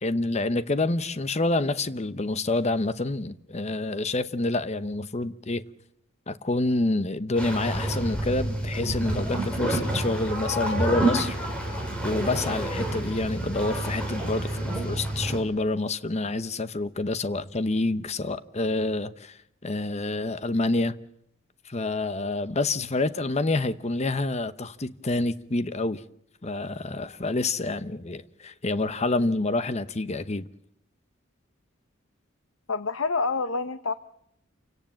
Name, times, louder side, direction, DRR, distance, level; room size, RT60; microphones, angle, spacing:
voice 1, 0.0-5.6 6.3-11.4 12.0-20.9 21.7-26.0 26.4-30.5, left 2 dB, 35° left, 0.9 m, -27 dB
sound 1, 7.4-15.4, right 1 dB, 5° left, 6.8 m, -29 dB
voice 2, 32.7-33.9, left 4 dB, 80° left, 0.9 m, -27 dB
28.0 x 18.0 x 7.6 m
head